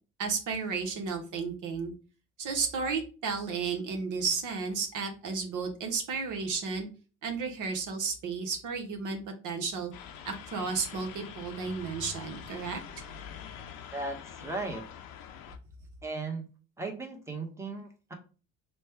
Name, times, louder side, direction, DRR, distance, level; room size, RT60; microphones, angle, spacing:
voice 1, 0.2-1.9 2.4-6.9 7.2-9.9 10.2-12.8, right 5 dB, 60° right, 3 dB, 1.0 m, -33 dB
sound 1, 9.9-15.6, left 8 dB, 80° left, 0.6 m, -45 dB
voice 2, 13.9-14.8 16.0-16.5 16.8-18.1, right 3 dB, 10° right, 2 dB, 1.1 m, -36 dB
3.2 x 2.3 x 4.4 m, 0.34 s
supercardioid pair, 75°, 34 cm